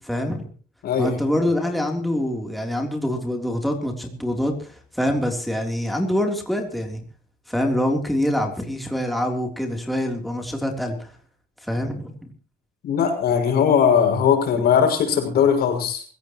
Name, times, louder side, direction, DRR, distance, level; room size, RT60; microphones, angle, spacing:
voice 1, 0.1-0.5 1.0-7.0 7.5-11.1 11.6-12.1, left 1 dB, ahead, 2 dB, 3.3 m, -25 dB
voice 2, 0.8-1.2 12.8-16.0, left 7 dB, 70° left, 4 dB, 6.3 m, -19 dB
25.5 x 16.0 x 3.0 m, 0.39 s
cardioid pair, 110°, 17 cm